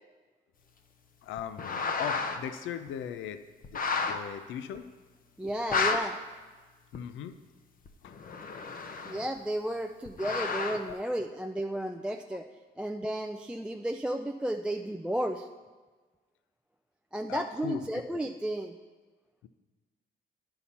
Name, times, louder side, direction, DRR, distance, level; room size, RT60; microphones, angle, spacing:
voice 1, 1.2-3.4 3.7-4.9 6.9-7.4 8.0-8.1 10.9-11.0 17.3-17.8 19.4-19.5, left 9 dB, 75° left, 10 dB, 0.5 m, -39 dB
sound 1, 1.4-2.4 2.9-3.0 3.6-4.2 4.8-4.9 5.5-6.0 6.9-7.0 7.9-9.4 10.1-10.9, left 4 dB, 45° left, 0.8 m, -31 dB
voice 2, 5.4-6.2 9.0-12.5 12.8-15.5 17.1-18.8, right 1 dB, 5° right, 5 dB, 0.3 m, -33 dB
10.0 x 5.7 x 4.2 m, 1.4 s
cardioid pair, 90°, 20 cm